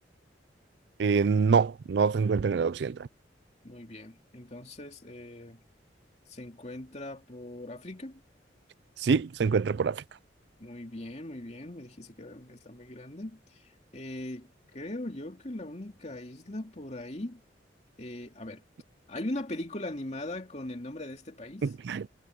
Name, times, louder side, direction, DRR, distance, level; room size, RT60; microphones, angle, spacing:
voice 1, 1.0-3.0 9.0-10.0 21.6-22.1, right 5 dB, 65° right, 0.4 m, -25 dB
voice 2, 3.6-5.6 6.3-8.2 10.6-13.6 13.9-17.4 18.0-18.6 19.1-21.7, left 1 dB, 35° left, 2.7 m, -40 dB
head